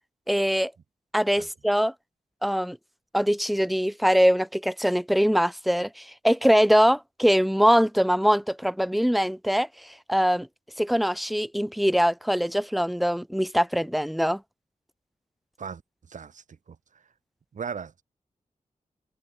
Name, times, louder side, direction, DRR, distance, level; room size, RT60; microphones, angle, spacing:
voice 1, 0.3-0.7 1.1-1.9 2.4-2.8 3.1-9.7 10.1-10.5 10.8-14.4, equal, ahead, 1.1 m, -22 dB
voice 2, 16.1-16.4 17.5-18.0, right 6 dB, 75° right, 3.3 m, -36 dB
wide cardioid pair, 170°, 13 cm